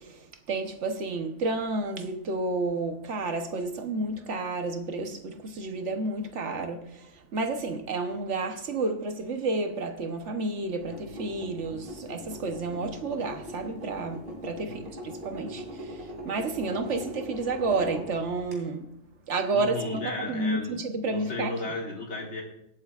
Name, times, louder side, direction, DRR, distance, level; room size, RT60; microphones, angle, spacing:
voice 1, 0.5-6.8 7.3-15.6 16.2-18.8 19.3-21.5, right 3 dB, 55° right, 1.2 m, -30 dB
sound 1, 10.8-18.5, equal, 35° right, 3.0 m, -41 dB
voice 2, 19.5-20.8 21.1-22.4, left 2 dB, 45° left, 2.3 m, -34 dB
23.0 x 8.3 x 2.4 m
omnidirectional pair, 1.6 m